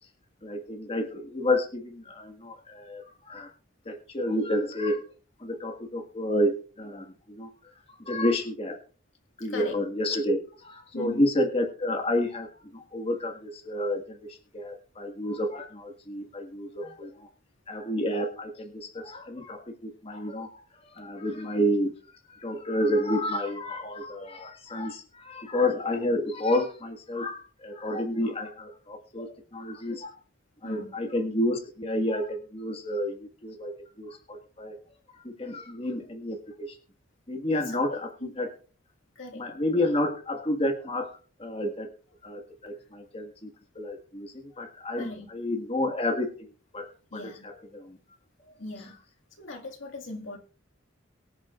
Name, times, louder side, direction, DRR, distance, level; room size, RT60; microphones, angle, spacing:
voice 1, 0.4-3.5 3.9-5.0 5.4-7.5 8.0-8.8 9.4-12.5 12.7-17.3 17.7-21.9 22.3-30.2 30.6-34.8 35.2-36.8 37.3-38.1 38.4-38.5 39.4-41.1 41.4-41.9 42.2-46.9 47.2-48.0 48.5-48.6, left 1 dB, 30° left, 3 dB, 1.7 m, -30 dB
voice 2, 10.9-11.2 30.6-30.9 37.5-38.3 39.2-39.5 45.0-45.3 47.1-47.5 48.6-48.9 49.4-50.4, left 2 dB, 80° left, 1 dB, 2.1 m, -39 dB
23.0 x 8.0 x 2.5 m, 0.39 s
head